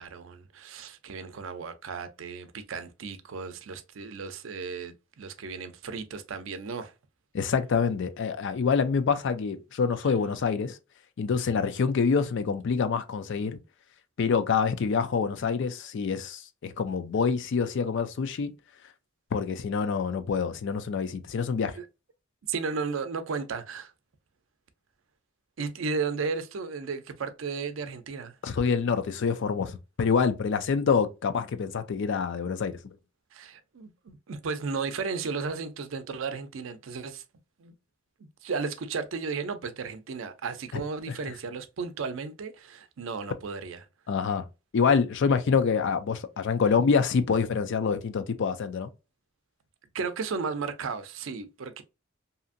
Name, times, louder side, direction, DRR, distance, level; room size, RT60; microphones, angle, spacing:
voice 1, 0.0-6.9 21.8-21.9 22.5-23.9 25.6-28.3 33.3-37.2 37.6-37.7 38.4-43.8 49.9-51.8, right 5 dB, 70° right, 0.5 m, -34 dB
voice 2, 7.3-10.8 11.2-13.6 14.2-18.5 19.3-21.8 28.4-32.8 40.7-40.8 41.1-41.3 44.1-44.5 44.7-48.9, left 5 dB, 65° left, 0.4 m, -26 dB
2.7 x 2.5 x 2.5 m
head